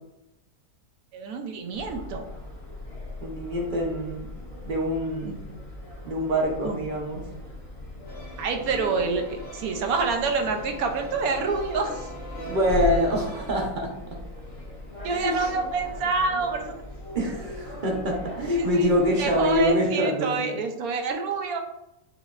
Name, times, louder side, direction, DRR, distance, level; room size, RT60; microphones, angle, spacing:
voice 1, 1.1-2.3 5.3-5.4 6.6-6.8 8.4-12.1 15.0-16.8 18.5-18.9 19.2-21.6, right 4 dB, 80° right, 5 dB, 1.1 m, -27 dB
sound 1, 1.7-19.7, left 2 dB, 65° left, 0.3 m, -38 dB
voice 2, 3.2-4.3 4.7-5.4 6.0-7.3 12.5-14.2 15.1-15.5 17.1-20.6, equal, 45° right, 0 dB, 0.7 m, -25 dB
sound 2, 8.1-13.7, equal, 35° left, 0.9 m, -41 dB
5.0 x 3.1 x 2.4 m, 0.89 s
omnidirectional pair, 1.6 m